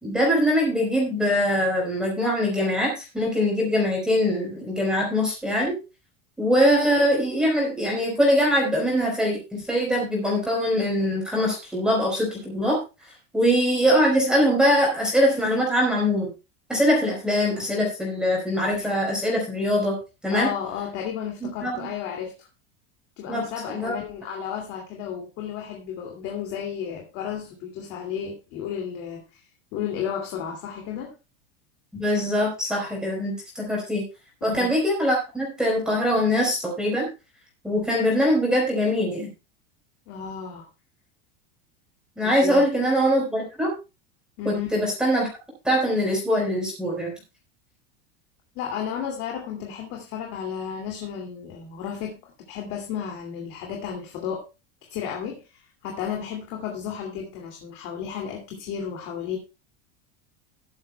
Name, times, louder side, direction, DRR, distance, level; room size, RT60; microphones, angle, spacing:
voice 1, 0.0-5.7 6.4-12.8 13.3-16.3 16.7-20.0 20.2-20.5 21.4-21.9 23.3-23.9 31.9-34.0 34.4-37.1 37.6-39.3 42.2-43.7 44.4-45.3 45.6-47.1, equal, 5° right, -2 dB, 4.0 m, -22 dB
voice 2, 20.3-22.5 23.2-29.4 29.7-31.1 34.4-34.7 40.1-40.7 42.2-42.6 44.4-44.8 48.6-54.4 54.9-59.4, left 8 dB, 50° left, 1 dB, 2.4 m, -33 dB
15.0 x 11.5 x 2.2 m, 0.28 s
supercardioid pair, 140°, 29 cm